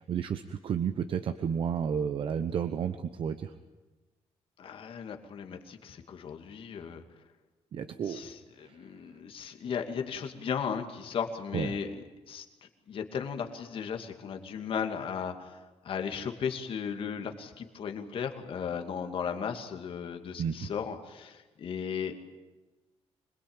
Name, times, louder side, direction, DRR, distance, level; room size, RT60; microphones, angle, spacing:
voice 1, 0.0-3.5 7.7-8.2 8.6-8.7 11.5-11.7 20.4-20.6, right 7 dB, 50° right, 9 dB, 1.0 m, -31 dB
voice 2, 4.6-7.0 8.1-15.6 15.8-22.1, left 7 dB, 55° left, 5 dB, 2.4 m, -36 dB
26.0 x 21.0 x 9.0 m, 1.2 s
wide cardioid pair, 175°, 11 cm